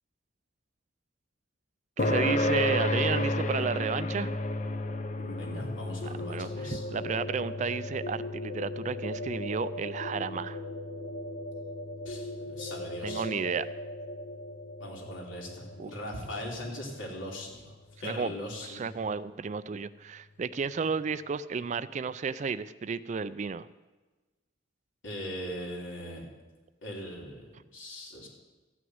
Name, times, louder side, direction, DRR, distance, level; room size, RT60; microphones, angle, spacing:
sound 1, 2.0-16.9, left 1 dB, 40° left, 0.7 m, -34 dB
voice 1, 2.0-4.3 6.2-10.6 13.0-13.7 15.8-15.9 18.0-18.3 18.6-23.7, right 5 dB, 40° right, 15 dB, 0.3 m, -32 dB
voice 2, 5.2-6.8 12.0-13.3 14.8-17.7 18.0-18.8 25.0-26.2 26.8-28.3, left 1 dB, 85° left, -1 dB, 3.2 m, -40 dB
sound 2, 6.0-17.7, left 1 dB, 60° left, 1.3 m, -40 dB
14.0 x 6.2 x 9.4 m, 1.2 s
head